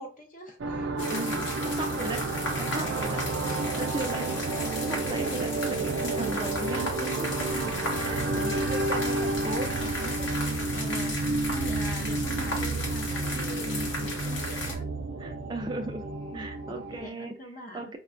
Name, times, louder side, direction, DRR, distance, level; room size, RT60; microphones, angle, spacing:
voice 1, 0.0-1.2 7.5-8.8 10.7-14.9 16.3-17.9, equal, 45° left, 4 dB, 0.6 m, -43 dB
sound 1, 0.6-17.1, right 3 dB, 85° right, 0.5 m, -31 dB
sound 2, 1.0-14.8, left 2 dB, 80° left, 0.9 m, -35 dB
voice 2, 1.1-2.2 2.6-3.2 3.6-10.3 11.3-11.4 15.2-16.1 16.3-17.4 17.7-18.0, right 2 dB, 25° right, 5 dB, 0.3 m, -37 dB
5.3 x 2.2 x 2.4 m, 0.38 s
head